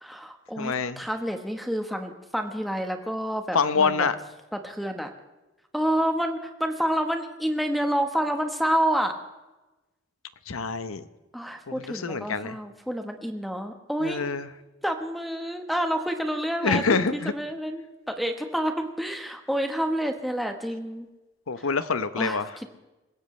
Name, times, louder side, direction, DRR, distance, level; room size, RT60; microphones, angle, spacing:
voice 1, 0.0-4.1 4.6-5.1 5.7-9.2 11.3-14.2 14.8-21.1 22.2-22.4, equal, ahead, 1.2 m, -28 dB
voice 2, 0.6-1.0 3.5-4.2 10.5-11.0 11.7-12.6 14.0-14.5 16.6-17.3 21.5-22.5, left 5 dB, 85° left, 0.9 m, -26 dB
27.0 x 16.0 x 3.3 m
head